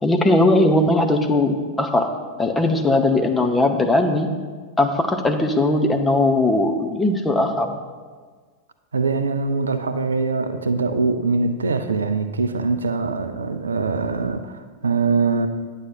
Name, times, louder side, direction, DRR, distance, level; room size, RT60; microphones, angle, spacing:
voice 1, 0.0-2.1 2.4-4.3 4.8-7.8, left 2 dB, 10° left, 4 dB, 0.9 m, -19 dB
voice 2, 8.9-15.5, right 4 dB, 70° right, 9 dB, 0.5 m, -23 dB
9.4 x 7.9 x 4.3 m, 1.5 s
figure-of-eight pair, 90°, 0 cm